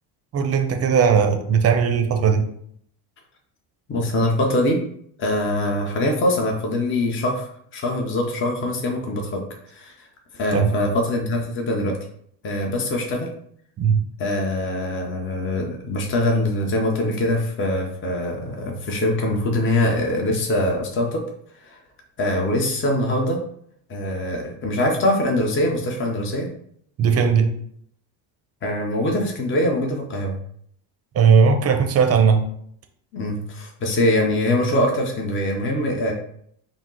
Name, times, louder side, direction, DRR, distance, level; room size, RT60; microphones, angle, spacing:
voice 1, 0.3-2.5 10.5-10.7 13.8-14.0 27.0-27.5 31.1-32.4, right 6 dB, 35° right, 0.6 m, -17 dB
voice 2, 3.9-4.8 5.2-9.4 9.7-10.1 10.3-12.0 12.4-13.3 14.2-21.2 21.6-21.8 22.2-23.4 23.9-26.5 28.6-30.4 33.1-36.1, left 1 dB, 30° left, 0.8 m, -23 dB
4.9 x 2.0 x 3.8 m
cardioid pair, 115°, 43 cm